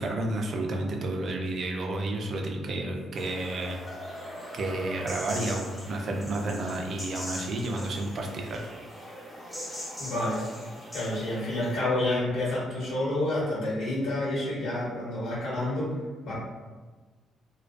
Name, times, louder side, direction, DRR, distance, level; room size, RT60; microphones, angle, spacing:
voice 1, 0.0-3.8 4.1-8.7, right 2 dB, 55° right, 2 dB, 0.4 m, -31 dB
sound 1, 3.1-11.8, equal, 15° left, 0.9 m, -41 dB
voice 2, 10.0-10.4 10.9-15.9 16.2-16.3, left 1 dB, 85° left, -7 dB, 1.1 m, -29 dB
2.2 x 2.2 x 2.4 m, 1.4 s
cardioid pair, 90°, 0 cm